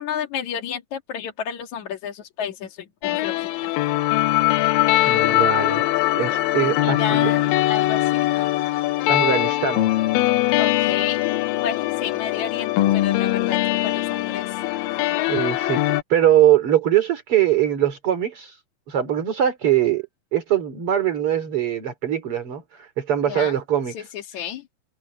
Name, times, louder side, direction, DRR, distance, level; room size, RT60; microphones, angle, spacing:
voice 1, 0.0-2.8 3.0-3.7 6.8-8.5 10.6-11.3 11.6-13.6 13.8-14.5 23.3-23.5 23.9-24.0 24.3-24.6, left 8 dB, 60° left, 3.1 m, -31 dB
sound 1, 3.0-16.0, left 16 dB, 85° left, 2.5 m, -21 dB
voice 2, 5.1-5.8 6.1-7.3 9.1-9.9 15.3-15.8 16.1-18.6 18.9-20.1 20.3-24.1, right 11 dB, 40° right, 3.5 m, -22 dB
omnidirectional pair, 4.0 m